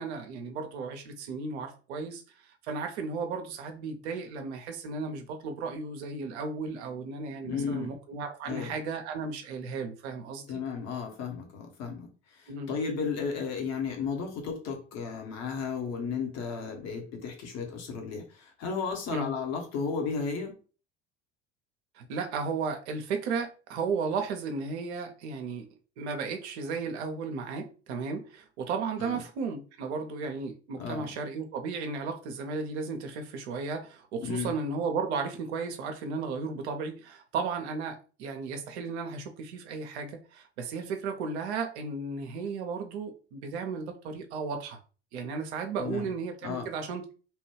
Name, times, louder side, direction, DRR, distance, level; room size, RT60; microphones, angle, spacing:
voice 1, 0.0-10.5 12.5-12.7 19.1-19.3 21.9-25.7 26.0-44.8 45.1-47.1, right 4 dB, 70° right, 0.6 m, -34 dB
voice 2, 7.4-7.9 8.4-8.7 10.5-20.5 29.0-29.2 30.8-31.1 34.2-34.5 45.8-46.1 46.4-46.7, left 5 dB, 50° left, 1.1 m, -34 dB
3.0 x 2.2 x 3.1 m
figure-of-eight pair, 65°, 35 cm